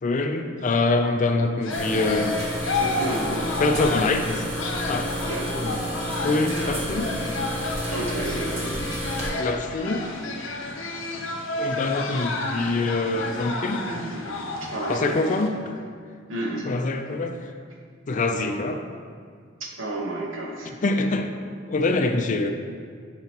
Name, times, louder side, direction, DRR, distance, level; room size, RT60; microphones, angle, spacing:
voice 1, 0.0-2.4 3.6-4.4 4.9-5.1 5.6-5.7 6.2-7.1 9.4-10.1 11.6-13.8 14.9-15.5 16.6-17.4 18.1-18.8 20.8-21.3 21.7-22.5, left 3 dB, 40° left, 6 dB, 0.4 m, -24 dB
sound 1, 1.6-15.5, left 2 dB, 70° left, 0.7 m, -31 dB
sound 2, 1.7-9.3, right 1 dB, 35° right, 1.4 m, -31 dB
voice 2, 2.7-3.5 5.3-5.6 7.9-8.7 13.8-15.3 16.3-16.7 19.6-20.8, right 1 dB, 70° right, -1 dB, 1.1 m, -32 dB
9.2 x 4.9 x 2.9 m, 2.1 s
head